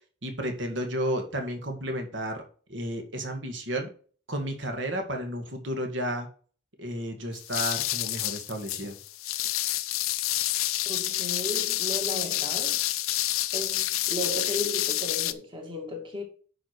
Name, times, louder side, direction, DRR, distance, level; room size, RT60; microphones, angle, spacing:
voice 1, 0.2-2.4 2.7-3.9 4.3-6.3 6.8-9.0, equal, 60° right, 1.9 m, -32 dB
sound 1, 7.3-15.3, left 15 dB, 90° left, 0.6 m, -29 dB
voice 2, 10.9-12.8 13.5-16.2, equal, 25° right, 2.0 m, -35 dB
10.0 x 4.8 x 4.6 m
head